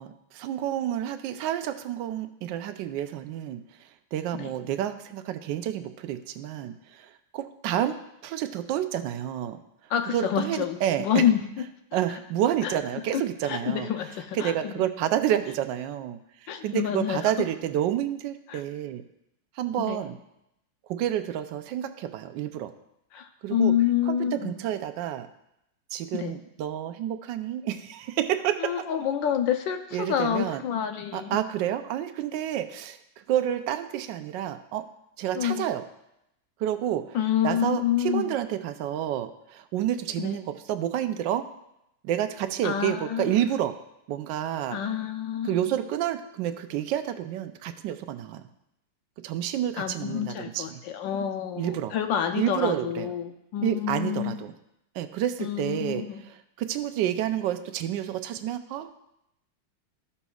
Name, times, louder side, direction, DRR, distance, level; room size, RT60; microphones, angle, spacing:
voice 1, 0.0-8.0 8.2-9.6 10.1-11.2 11.9-13.9 14.3-19.0 19.6-20.2 20.9-22.7 23.4-23.7 24.1-25.3 25.9-28.7 29.9-30.6 31.1-33.0 33.3-34.9 35.2-35.8 36.6-37.2 37.4-41.4 42.0-43.8 44.1-44.8 45.4-48.4 49.2-50.8 51.6-51.9 52.4-53.1 53.6-54.5 54.9-58.9, right 11 dB, 75° right, 9 dB, 1.3 m, -29 dB
voice 2, 9.9-11.4 12.6-12.7 13.1-14.8 16.5-17.3 18.5-18.6 19.8-20.0 23.1-24.6 26.1-26.4 28.6-31.4 35.3-35.7 37.1-38.3 40.2-40.4 42.6-43.4 44.7-45.7 49.8-54.4 55.4-56.2, left 9 dB, 80° left, 6 dB, 1.4 m, -28 dB
14.0 x 7.0 x 2.4 m, 0.82 s
omnidirectional pair, 2.1 m